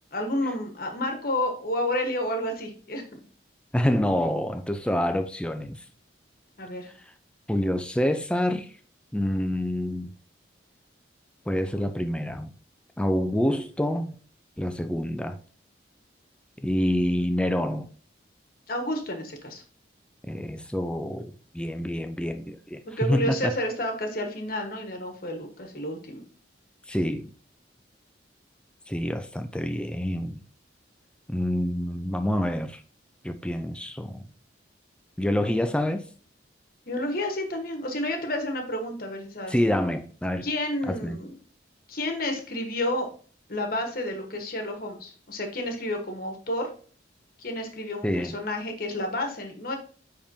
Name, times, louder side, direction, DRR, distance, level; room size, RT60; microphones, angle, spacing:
voice 1, 0.1-3.2 6.6-6.9 18.7-19.6 23.0-26.2 36.9-39.5 40.4-41.3 41.9-43.1 43.5-46.7 47.4-49.7, left 1 dB, 50° left, 1.3 m, -30 dB
voice 2, 3.7-5.8 7.5-8.7 9.1-10.1 11.5-12.5 13.0-14.1 14.6-15.4 16.6-17.9 20.3-23.5 26.9-27.3 28.9-30.4 31.3-32.8 33.2-34.3 35.2-36.0 39.5-40.5 40.9-41.2 48.0-48.3, left 1 dB, 5° left, 0.4 m, -27 dB
9.8 x 3.6 x 2.7 m
head